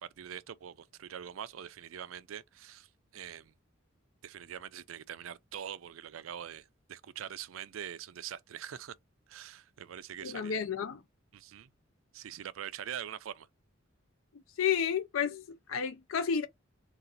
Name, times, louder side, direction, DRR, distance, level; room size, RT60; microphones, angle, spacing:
voice 1, 0.0-3.5 4.2-8.9 9.3-10.6 11.3-11.7 12.1-13.5, right 9 dB, 85° right, 0.4 m, -44 dB
voice 2, 10.2-11.0 14.6-16.5, left 7 dB, 85° left, 0.5 m, -31 dB
3.9 x 2.4 x 3.9 m
head